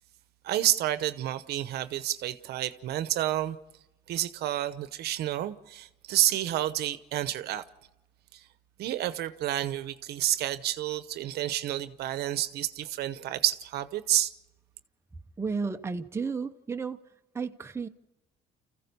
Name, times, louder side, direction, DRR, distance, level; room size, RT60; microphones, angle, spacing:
voice 1, 0.4-3.6 4.1-7.6 8.3-8.4 8.8-14.3, right 13 dB, 70° right, 0.9 m, -29 dB
voice 2, 15.4-17.0 17.3-17.9, right 5 dB, 15° right, 0.8 m, -32 dB
28.0 x 15.0 x 6.8 m
cardioid pair, 110°, 17 cm